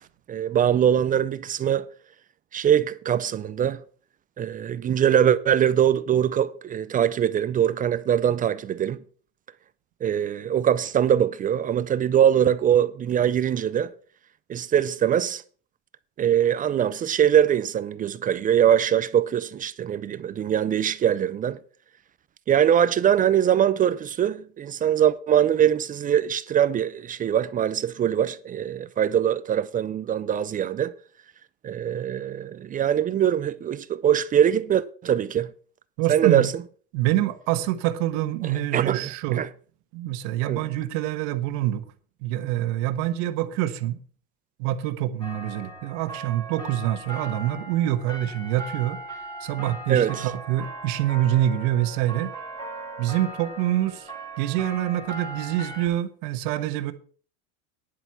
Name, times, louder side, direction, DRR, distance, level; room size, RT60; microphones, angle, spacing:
voice 1, 0.3-1.9 2.5-3.8 4.4-9.0 10.0-13.9 14.5-15.4 16.2-21.6 22.5-30.9 31.6-35.5 36.1-36.5 38.7-39.5 40.5-40.6 49.9-50.3, right 9 dB, 25° right, 0.4 m, -22 dB
voice 2, 36.0-36.5 36.9-39.4 39.9-41.8 42.2-44.0 44.6-49.0 49.4-52.3 53.0-54.1 54.4-56.9, right 13 dB, 65° right, 1.3 m, -26 dB
sound 1, 45.2-55.9, right 2 dB, 10° left, 3.3 m, -38 dB
10.5 x 7.8 x 5.6 m
supercardioid pair, 125°, 36 cm